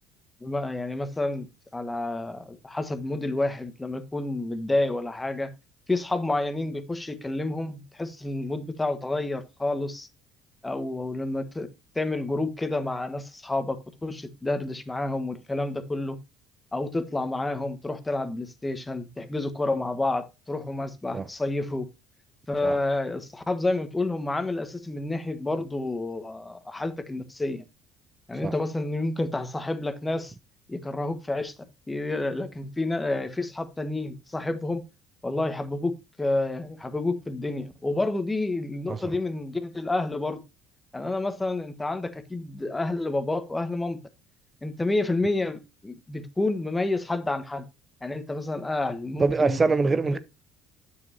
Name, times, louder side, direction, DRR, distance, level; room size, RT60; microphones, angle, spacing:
voice 1, 0.4-1.5 1.7-5.5 5.9-10.1 10.6-11.7 11.9-16.2 16.7-21.9 22.5-27.6 28.3-30.3 30.7-31.5 31.9-34.8 35.2-40.4 40.9-44.0 44.6-47.6 48.0-49.6 50.1-50.2, left 2 dB, 15° left, 1.4 m, -29 dB
voice 2, 49.2-50.2, right 3 dB, 30° right, 0.5 m, -24 dB
9.7 x 7.2 x 2.8 m
hypercardioid pair, 70°, 0 cm